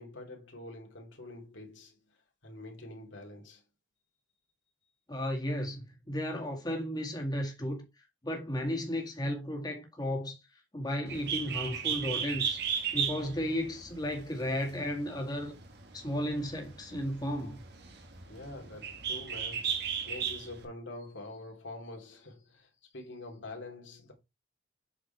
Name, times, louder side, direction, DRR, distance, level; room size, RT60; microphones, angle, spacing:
voice 1, 0.0-3.6 18.3-24.1, left 2 dB, 75° left, 2.9 m, -46 dB
voice 2, 5.1-7.8 8.2-10.4 10.7-12.6 12.9-15.6 15.9-17.6, equal, 20° left, 2.1 m, -34 dB
Bird, 11.1-20.6, right 7 dB, 60° right, 1.9 m, -35 dB
8.1 x 4.9 x 4.5 m
head